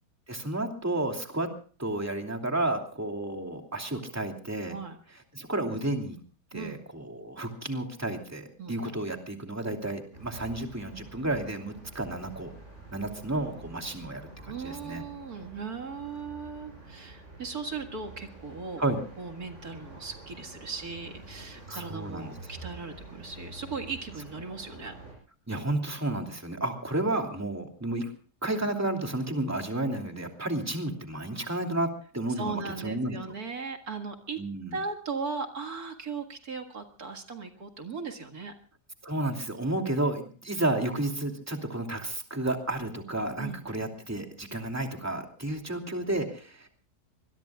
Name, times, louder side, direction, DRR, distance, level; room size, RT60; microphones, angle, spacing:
voice 1, 0.3-1.5 1.8-4.8 5.3-6.2 6.5-12.5 12.9-15.0 18.8-19.0 21.7-22.3 25.5-28.1 28.4-33.2 34.4-34.7 39.0-46.7, right 2 dB, 10° right, 3 dB, 2.7 m, -31 dB
voice 2, 6.5-6.8 8.6-8.7 14.5-18.8 19.2-24.9 32.3-34.4 34.7-38.5 43.4-43.6, right 4 dB, 65° right, 4 dB, 2.4 m, -38 dB
sound 1, 10.1-25.1, right 3 dB, 45° right, 8.4 m, -48 dB
25.0 x 22.0 x 2.3 m, 0.40 s
omnidirectional pair, 1.8 m